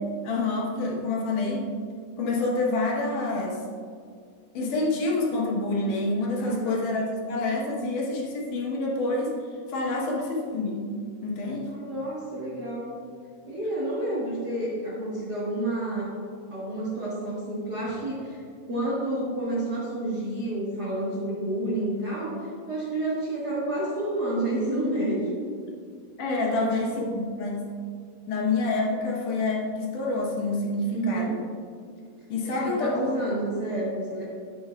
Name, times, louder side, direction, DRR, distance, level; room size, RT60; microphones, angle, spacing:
voice 1, 0.2-1.6 2.2-3.6 4.5-9.4 9.7-10.9 11.2-11.7 26.2-27.7 28.3-31.4 32.3-33.1, left 2 dB, 70° left, -2 dB, 2.4 m, -27 dB
voice 2, 6.4-6.9 9.9-10.2 11.7-13.0 13.5-16.1 16.5-18.4 18.7-25.4 26.4-27.2 30.9-31.4 32.6-34.2, right 1 dB, 90° right, -8 dB, 0.8 m, -30 dB
10.5 x 8.6 x 2.3 m, 2.2 s
omnidirectional pair, 4.2 m